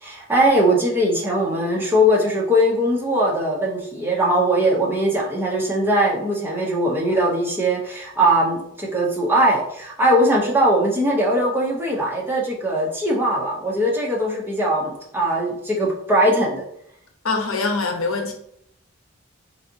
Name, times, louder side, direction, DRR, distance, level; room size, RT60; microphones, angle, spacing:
voice 1, 0.0-16.6, right 1 dB, 10° right, -3 dB, 0.7 m, -20 dB
voice 2, 17.2-18.3, left 3 dB, 80° left, 4 dB, 0.7 m, -23 dB
4.0 x 3.4 x 2.7 m, 0.70 s
head